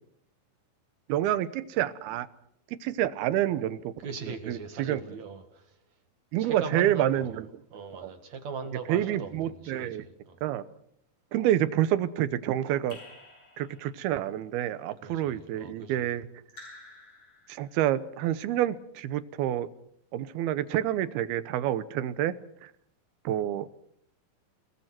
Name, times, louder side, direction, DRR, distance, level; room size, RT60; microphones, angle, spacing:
voice 1, 1.1-2.3 2.8-3.9 4.3-5.0 6.3-7.6 8.0-8.1 8.9-10.1 10.4-10.6 11.3-13.0 13.6-16.3 17.5-19.7 20.1-22.7 23.2-23.7, right 12 dB, 85° right, 14 dB, 2.9 m, -28 dB
voice 2, 4.0-5.7 6.4-7.4 7.7-10.4 15.0-16.1, right 5 dB, 55° right, 7 dB, 2.8 m, -40 dB
Raindrop / Drip, 12.9-14.1 16.5-17.9, left 3 dB, 45° left, 9.4 m, -50 dB
29.5 x 18.5 x 6.1 m, 0.71 s
omnidirectional pair, 4.3 m